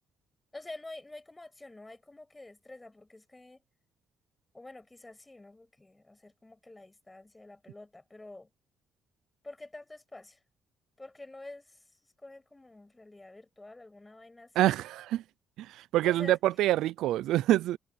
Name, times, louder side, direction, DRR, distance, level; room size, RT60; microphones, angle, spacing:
voice 1, 0.5-3.6 4.5-8.5 9.4-10.4 11.0-11.8 12.2-14.7 16.0-16.4, left 2 dB, 15° left, 6.2 m, -48 dB
voice 2, 14.6-15.2 15.6-17.8, right 14 dB, 85° right, 0.4 m, -26 dB
cardioid pair, 90°, 0 cm